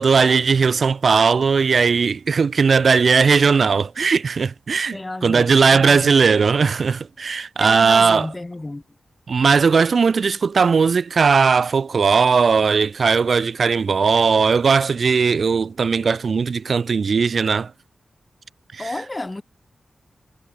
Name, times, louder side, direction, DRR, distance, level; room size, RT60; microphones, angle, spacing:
voice 1, 0.0-8.3 9.3-17.7 18.7-18.9, right 5 dB, 55° right, 0.6 m, -18 dB
voice 2, 4.9-6.3 7.6-8.8 18.8-19.4, left 2 dB, 15° left, 0.6 m, -31 dB
wide cardioid pair, 170°, 0 cm